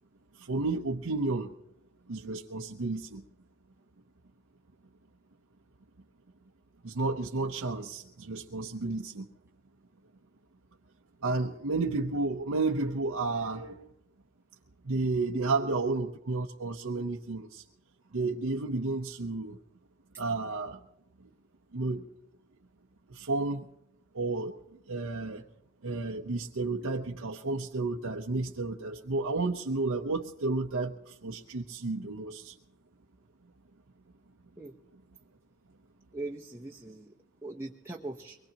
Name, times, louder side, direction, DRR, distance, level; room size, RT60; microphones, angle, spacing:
voice 1, 0.4-1.5 2.1-3.2 6.8-9.3 11.2-13.9 14.8-17.6 18.1-19.6 20.2-20.8 21.7-22.1 23.1-23.7 24.1-24.5 24.9-25.4 25.8-32.5, right 3 dB, 90° right, 0 dB, 0.8 m, -32 dB
voice 2, 36.1-37.1 37.4-38.4, right 2 dB, 10° right, -2 dB, 0.7 m, -40 dB
23.5 x 20.5 x 2.9 m, 0.81 s
head